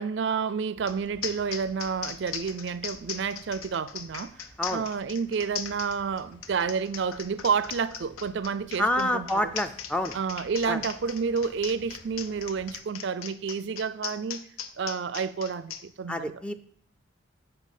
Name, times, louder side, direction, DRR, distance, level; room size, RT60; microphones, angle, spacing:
voice 1, 0.0-4.3 4.7-9.5 10.1-14.4 14.8-16.4, right 5 dB, 55° right, 0.4 m, -30 dB
sound 1, 0.7-12.8, equal, 40° left, 2.8 m, -55 dB
sound 2, 0.9-1.0 1.2-15.8, left 8 dB, 90° left, 0.8 m, -38 dB
voice 2, 8.8-10.1 10.7-10.8 16.1-16.5, left 1 dB, 5° left, 0.4 m, -27 dB
9.3 x 5.6 x 7.3 m
head